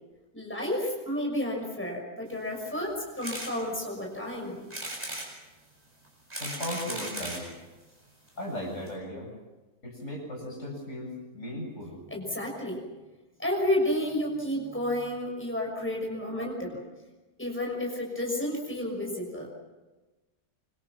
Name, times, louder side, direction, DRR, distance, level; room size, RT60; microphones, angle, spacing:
voice 1, 0.3-4.6 12.1-12.8 13.4-16.8 17.4-19.5, left 1 dB, 5° left, -1 dB, 6.4 m, -31 dB
sound 1, 3.2-3.5 4.0-4.1 4.7-5.3 6.0-7.5 8.3-8.4 8.6-8.7 8.9-9.0, right 1 dB, 25° right, 7.7 m, -36 dB
voice 2, 6.4-7.5 8.4-9.3 9.8-11.9, left 1 dB, 50° left, 0 dB, 7.6 m, -37 dB
26.5 x 26.0 x 6.2 m, 1.2 s
omnidirectional pair, 1.6 m